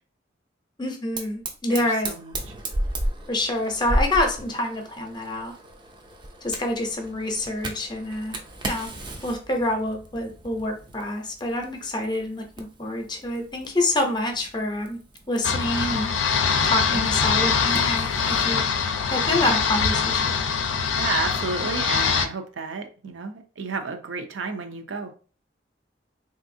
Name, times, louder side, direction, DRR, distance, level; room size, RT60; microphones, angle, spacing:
voice 1, 0.8-2.1 3.3-5.5 6.4-8.4 8.7-8.9 9.2-15.0 15.3-16.1 16.6-18.6 19.1-20.3, left 1 dB, 25° left, 0.5 m, -27 dB
Fire, 1.2-18.5, right 1 dB, 25° right, 0.4 m, -35 dB
voice 2, 1.7-2.3 16.9-17.2 21.0-25.1, right 4 dB, 80° right, 0.5 m, -31 dB
sound 1, 15.4-22.3, left 6 dB, 85° left, 0.4 m, -23 dB
3.4 x 2.6 x 2.6 m
head